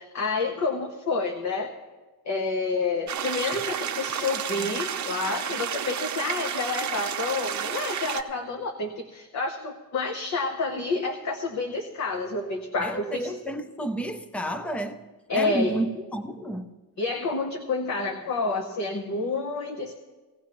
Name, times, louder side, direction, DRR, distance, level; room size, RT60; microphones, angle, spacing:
voice 1, 0.0-1.7 2.3-13.3 15.3-15.8 17.0-19.9, left 3 dB, 45° left, 0.9 m, -29 dB
sound 1, 3.1-8.2, right 8 dB, 50° right, 0.7 m, -31 dB
voice 2, 12.8-15.1 15.3-16.7, right 1 dB, 5° left, 0.5 m, -31 dB
18.0 x 16.5 x 3.0 m
wide cardioid pair, 175°, 37 cm